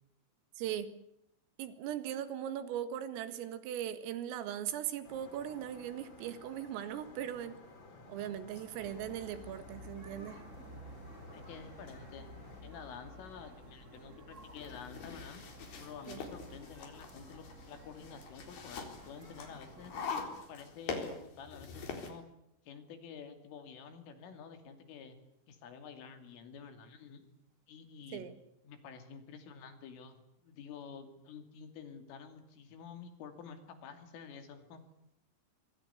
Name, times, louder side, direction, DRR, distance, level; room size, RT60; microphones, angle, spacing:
voice 1, 0.6-0.9 1.6-7.6 8.1-10.4 16.1-16.2 28.1-28.3, right 10 dB, 85° right, 12 dB, 4.4 m, -39 dB
sound 1, 5.0-12.6, left 3 dB, 25° left, 3.6 m, -55 dB
sound 2, 8.8-20.2, equal, 15° right, 4.9 m, -53 dB
voice 2, 11.3-12.3 12.6-15.4 15.8-19.9 20.5-22.3 22.6-25.2 25.5-27.2 27.7-28.3 28.6-34.8, left 6 dB, 75° left, 8 dB, 5.1 m, -50 dB
sound 3, 14.4-22.1, left 5 dB, 55° left, 5.7 m, -44 dB
25.5 x 23.0 x 8.3 m, 0.78 s
omnidirectional pair, 5.9 m